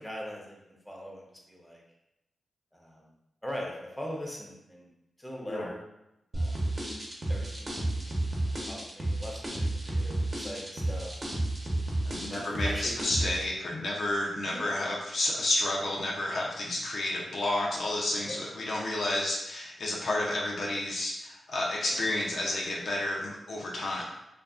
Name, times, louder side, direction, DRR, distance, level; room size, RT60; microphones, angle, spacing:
voice 1, 0.0-1.8 2.7-3.1 3.4-4.9 5.2-5.8 6.3-6.7 7.3-11.4 12.3-13.3 14.5-14.7 18.2-18.4 21.8-22.0, equal, 10° left, -2 dB, 0.7 m, -41 dB
sound 1, 6.3-13.4, right 1 dB, 40° right, 0.9 m, -31 dB
voice 2, 12.0-24.0, left 1 dB, 75° left, -3 dB, 0.5 m, -31 dB
2.5 x 2.5 x 2.3 m, 0.89 s
cardioid pair, 50°, 0 cm